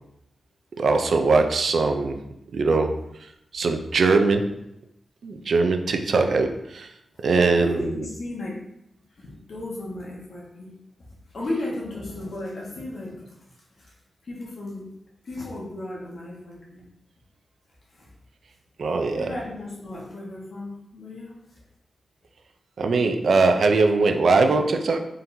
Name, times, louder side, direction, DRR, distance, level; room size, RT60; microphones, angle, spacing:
voice 1, 0.8-2.2 2.5-3.0 3.5-4.5 5.2-6.9 7.2-7.9 18.8-19.3 22.8-25.0, right 3 dB, 65° right, 6 dB, 0.4 m, -21 dB
voice 2, 7.4-8.6 9.2-10.7 11.3-13.3 13.8-13.9 14.2-14.9 15.2-16.8 17.9-18.1 18.9-21.3, left 1 dB, 60° left, -4 dB, 1.3 m, -34 dB
4.3 x 3.7 x 2.7 m, 0.81 s
wide cardioid pair, 140°, 0 cm